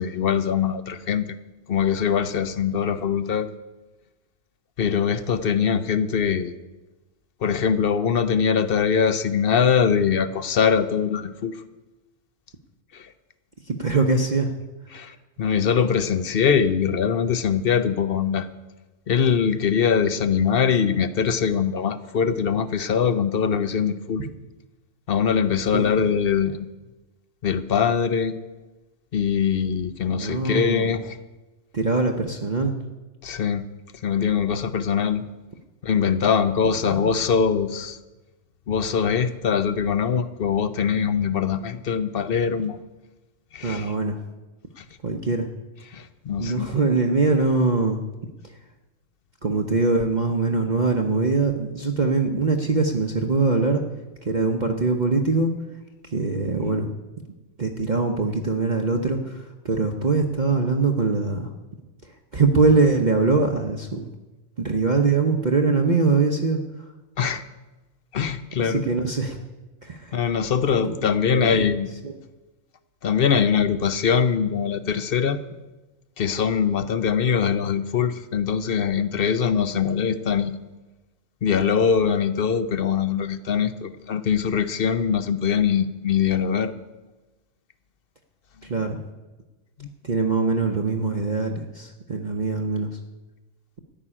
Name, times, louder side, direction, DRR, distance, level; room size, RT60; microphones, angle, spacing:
voice 1, 0.0-1.4 1.7-3.5 4.8-6.5 7.4-11.6 12.9-13.1 14.9-18.5 19.1-24.3 25.1-26.6 27.4-28.3 29.1-31.2 33.2-33.7 34.0-35.2 35.8-38.0 38.7-42.8 43.5-43.9 44.8-44.9 45.9-46.7 67.2-67.4 68.1-68.8 70.1-71.9 73.0-75.4 76.2-80.6 81.4-86.7 89.8-89.9, left 7 dB, 50° left, 12 dB, 0.8 m, -22 dB
voice 2, 13.7-14.5 25.7-26.1 30.1-30.9 31.7-32.8 36.9-37.0 43.6-44.2 45.0-45.5 46.4-48.0 49.4-53.8 54.2-55.5 56.0-56.9 57.6-61.5 62.3-64.1 64.6-66.6 68.6-69.4 69.8-70.2 71.0-71.6 72.0-72.1 88.6-89.0 90.0-92.9, right 3 dB, 40° right, 3 dB, 0.9 m, -22 dB
14.0 x 6.1 x 10.0 m, 1.1 s
omnidirectional pair, 1.4 m